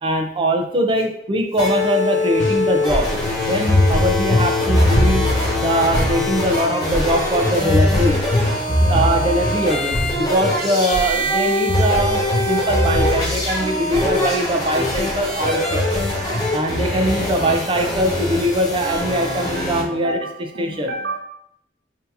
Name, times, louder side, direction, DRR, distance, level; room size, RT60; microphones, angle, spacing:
voice 1, 0.0-3.1 3.4-5.2 5.6-8.2 8.9-12.2 12.5-15.8 16.5-20.9, equal, 30° right, 3 dB, 0.6 m, -21 dB
sound 1, 1.6-19.8, left 1 dB, 25° left, 1.3 m, -23 dB
sound 2, 2.3-14.6 14.9-15.1 15.4-17.5 17.9-18.5 18.9-19.0, left 1 dB, 5° left, 1.5 m, -22 dB
voice 2, 19.6-21.2, right 2 dB, 85° right, -3 dB, 0.7 m, -31 dB
6.0 x 2.8 x 2.7 m, 0.74 s
head